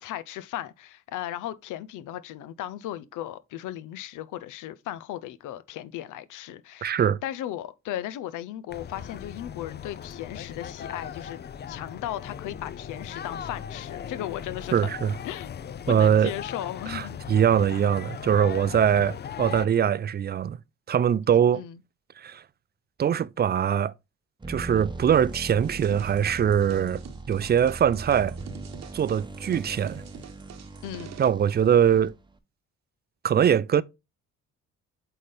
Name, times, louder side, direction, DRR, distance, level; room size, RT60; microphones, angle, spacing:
voice 1, 0.0-11.4 11.7-14.9 15.2-15.6 15.9-17.2 21.5-21.8 30.8-31.1, left 12 dB, 85° left, 0.6 m, -36 dB
voice 2, 6.8-7.2 14.7-15.1 15.9-16.3 16.9-20.6 20.9-21.6 22.2-22.4 23.0-23.9 24.5-27.0 27.3-28.4 28.9-30.0 31.2-32.1 33.2-33.8, right 8 dB, 35° right, 0.4 m, -22 dB
sound 1, 8.7-19.7, left 8 dB, 35° left, 0.4 m, -38 dB
sound 2, 24.4-32.4, right 2 dB, 15° right, 0.8 m, -40 dB
sound 3, 25.6-31.3, right 7 dB, 60° right, 1.0 m, -45 dB
8.2 x 3.9 x 3.3 m
cardioid pair, 90°, 30 cm